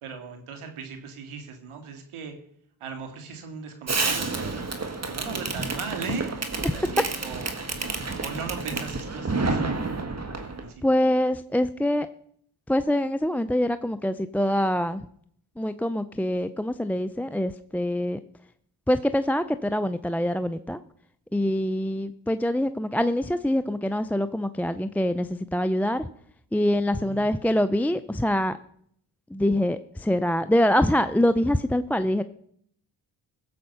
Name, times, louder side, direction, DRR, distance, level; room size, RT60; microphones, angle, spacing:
voice 1, 0.0-2.4 2.8-7.6 8.2-10.2 10.4-10.8 27.0-27.3, right 5 dB, 85° right, 5 dB, 2.1 m, -38 dB
Fireworks, 3.9-10.7, right 3 dB, 30° right, 1.8 m, -30 dB
voice 2, 10.8-12.1 12.7-15.1 15.6-18.2 18.9-20.8 21.3-26.1 26.5-28.6 29.3-32.2, left 1 dB, 5° left, 12 dB, 0.4 m, -24 dB
15.5 x 7.5 x 5.5 m, 0.66 s
supercardioid pair, 55°, 49 cm